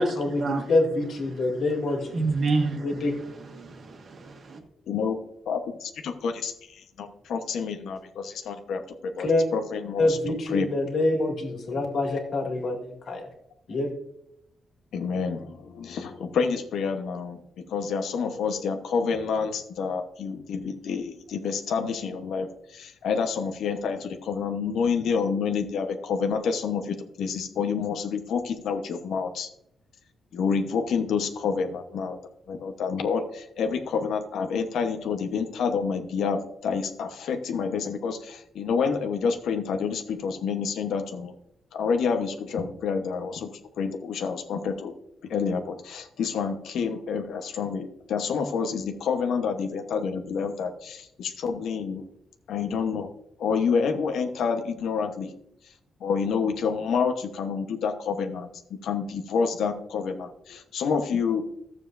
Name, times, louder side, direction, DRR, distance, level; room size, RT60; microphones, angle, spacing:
voice 1, 0.0-2.3 2.8-3.1 9.2-9.5 10.0-13.3 13.7-13.9, left 2 dB, 55° left, 1 dB, 2.2 m, -26 dB
voice 2, 2.1-2.9 3.6-4.6, right 3 dB, 40° right, 4 dB, 1.4 m, -27 dB
voice 3, 4.9-5.2 5.5-9.3 9.5-10.7 14.9-29.5 30.3-32.2 32.5-41.3 41.7-43.5 43.8-44.9 45.2-52.0 52.5-53.1 53.4-55.3 56.0-58.5 58.8-61.5, left 5 dB, 80° left, 6 dB, 1.0 m, -28 dB
14.0 x 7.4 x 2.6 m, 0.77 s
wide cardioid pair, 180°, 0 cm